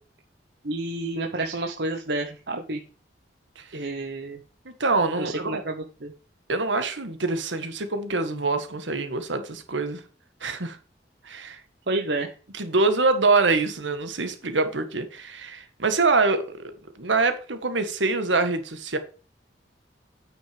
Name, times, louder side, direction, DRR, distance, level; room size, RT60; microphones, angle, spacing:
voice 1, 0.6-2.8 3.7-4.4 5.1-6.1 11.9-12.3, right 2 dB, 65° right, 1.0 m, -30 dB
voice 2, 4.6-5.6 6.5-10.0 10.4-10.8 11.2-11.6 12.5-16.7 17.0-19.0, right 3 dB, 90° right, 1.6 m, -25 dB
9.1 x 6.3 x 5.1 m
head